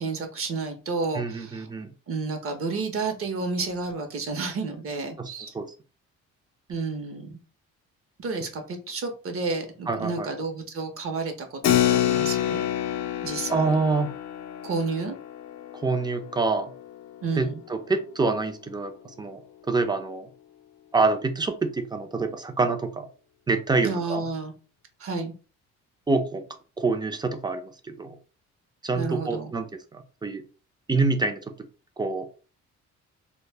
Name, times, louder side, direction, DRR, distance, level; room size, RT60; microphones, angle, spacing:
voice 1, 0.0-1.7 2.1-5.5 6.7-7.3 8.2-12.6 13.2-13.7 14.6-15.2 17.2-17.6 23.8-24.5 25.0-25.3 29.0-29.5, right 4 dB, 50° right, 5 dB, 0.6 m, -31 dB
voice 2, 1.1-1.9 5.2-5.3 5.5-5.7 9.9-10.3 13.5-14.1 15.7-16.7 17.4-19.4 19.7-20.3 20.9-23.1 23.5-24.3 26.1-26.4 26.8-28.2 28.8-29.7 29.9-30.4 30.9-31.4 32.0-32.3, right 3 dB, 15° right, 7 dB, 0.4 m, -26 dB
Keyboard (musical), 11.6-17.7, left 11 dB, 65° left, 0.5 m, -28 dB
2.1 x 2.0 x 3.3 m, 0.36 s
cardioid pair, 90°, 30 cm